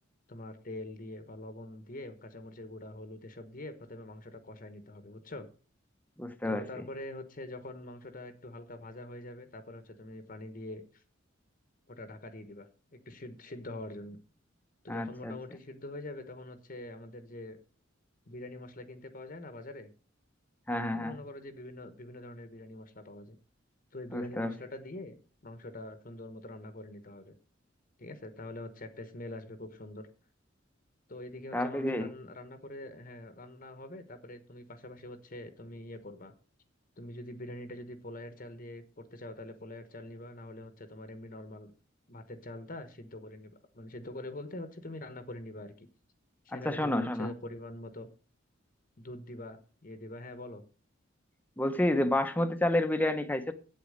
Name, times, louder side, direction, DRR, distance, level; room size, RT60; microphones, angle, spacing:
voice 1, 0.3-5.5 6.4-11.0 11.9-14.2 14.8-17.6 18.3-19.9 20.8-23.4 23.9-25.1 25.4-27.3 28.0-30.1 31.1-36.3 37.0-41.7 42.1-45.9 46.4-48.1 49.0-50.6, left 1 dB, 45° left, 1.1 m, -44 dB
voice 2, 6.2-6.6 14.9-15.3 20.7-21.2 24.1-24.5 31.5-32.1 46.5-47.3 51.6-53.5, left 1 dB, 10° left, 0.9 m, -29 dB
8.4 x 8.4 x 6.5 m
head